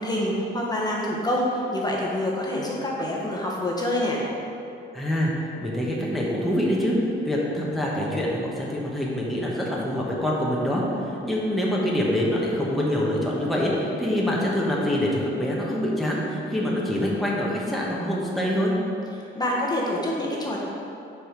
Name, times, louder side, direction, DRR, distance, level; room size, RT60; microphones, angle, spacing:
voice 1, 0.0-4.2 19.2-20.6, left 1 dB, 20° left, -3 dB, 1.2 m, -26 dB
voice 2, 4.9-7.0 7.2-18.7, equal, ahead, -5 dB, 1.2 m, -25 dB
6.0 x 4.9 x 5.1 m, 2.7 s
cardioid pair, 90°, 20 cm